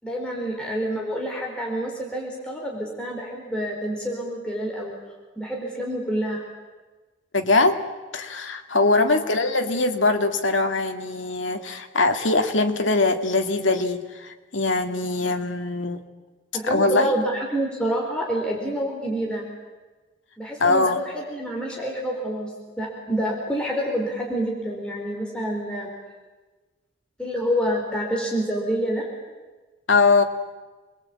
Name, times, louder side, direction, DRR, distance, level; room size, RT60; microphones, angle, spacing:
voice 1, 0.0-4.9 5.4-6.4 8.9-9.3 16.5-19.4 20.4-25.9 27.2-29.1, equal, 5° left, -2 dB, 4.4 m, -28 dB
voice 2, 7.3-7.8 8.1-16.0 16.6-17.1 20.6-21.0 29.9-30.2, left 3 dB, 75° left, 6 dB, 2.1 m, -22 dB
27.5 x 21.0 x 8.6 m, 1.3 s
head